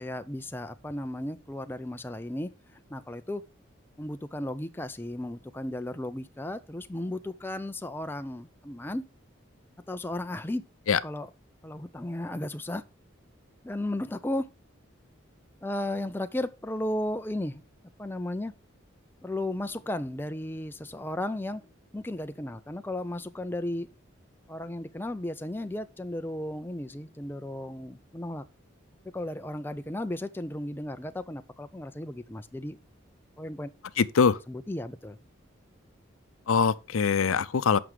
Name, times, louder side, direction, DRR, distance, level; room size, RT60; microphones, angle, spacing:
voice 1, 0.0-3.4 4.0-9.0 9.9-10.6 11.0-11.3 11.6-12.8 13.6-14.5 15.6-17.6 18.0-18.5 19.2-21.6 21.9-23.9 24.5-28.4 29.1-32.8 33.4-33.7 34.5-35.2, left 1 dB, 10° left, 0.4 m, -34 dB
voice 2, 34.0-34.4 36.5-37.8, left 5 dB, 85° left, 0.5 m, -23 dB
7.7 x 6.0 x 4.8 m
head